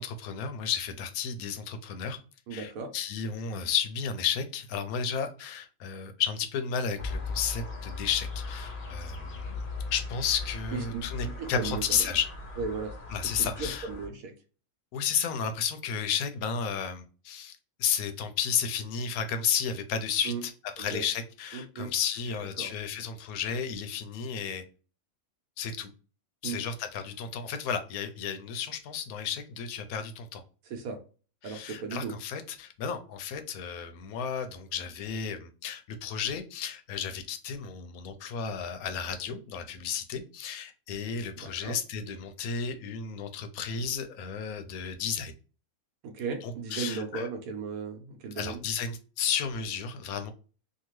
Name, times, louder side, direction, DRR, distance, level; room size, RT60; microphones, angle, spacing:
voice 1, 0.0-2.2 2.5-9.6 9.9-12.3 13.1-13.9 14.9-20.5 20.8-24.6 25.6-25.9 26.4-30.4 31.4-45.3 46.4-47.3 48.4-50.3, left 7 dB, 85° left, 1.0 m, -33 dB
voice 2, 2.5-2.9 10.7-12.1 12.6-13.0 13.2-14.3 20.2-20.4 20.8-21.0 21.5-21.9 22.6-22.7 26.4-26.6 30.6-31.0 31.4-32.1 41.4-41.7 46.0-48.6, right 5 dB, 80° right, 1.1 m, -36 dB
sound 1, 7.0-14.1, left 3 dB, 50° left, 0.7 m, -38 dB
2.8 x 2.4 x 3.0 m
omnidirectional pair, 1.5 m